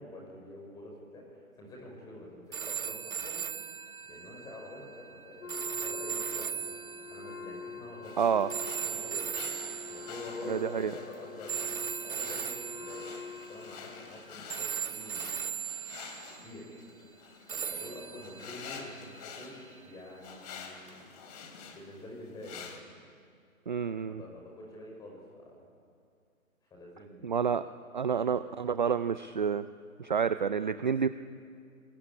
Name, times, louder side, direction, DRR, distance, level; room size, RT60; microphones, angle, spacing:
voice 1, 0.0-3.5 4.0-6.8 7.1-9.5 9.9-13.1 13.5-15.3 16.4-16.7 17.0-21.0 21.6-22.7 23.0-23.1 23.9-25.7 26.7-27.4 28.2-28.3, left 1 dB, 10° left, -1 dB, 5.7 m, -47 dB
sound 1, 2.5-10.7 11.5-14.2 14.5-16.6 17.5-19.7 20.9-21.0, right 8 dB, 75° right, 1.4 m, -39 dB
Wind instrument woodwind instrument, 5.4-14.2, left 5 dB, 65° left, 2.8 m, -45 dB
sound 2, 8.0-22.8, left 6 dB, 30° left, 2.9 m, -48 dB
voice 2, 8.2-8.5 10.5-10.9 23.7-24.2 27.2-27.6 27.9-29.6 30.0-31.1, right 7 dB, 35° right, 12 dB, 0.6 m, -29 dB
27.0 x 21.0 x 9.7 m, 2.3 s
hypercardioid pair, 155°, 43 cm